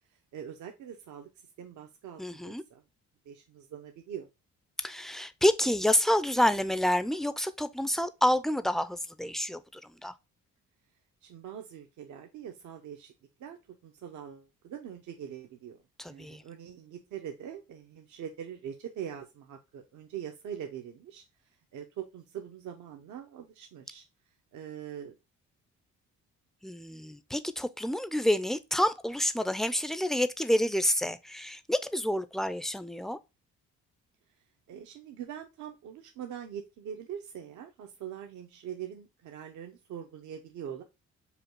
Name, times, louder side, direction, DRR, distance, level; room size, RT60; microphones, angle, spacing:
voice 1, 0.3-1.3 1.6-2.8 3.3-4.3 11.2-13.1 13.4-15.8 16.1-21.2 21.7-24.0 24.5-25.2 34.7-40.8, right 9 dB, 75° right, 0.7 m, -43 dB
voice 2, 2.2-2.6 4.8-10.1 16.0-16.4 26.6-33.2, left 1 dB, ahead, 0.4 m, -28 dB
5.1 x 2.3 x 4.5 m
cardioid pair, 90°, 30 cm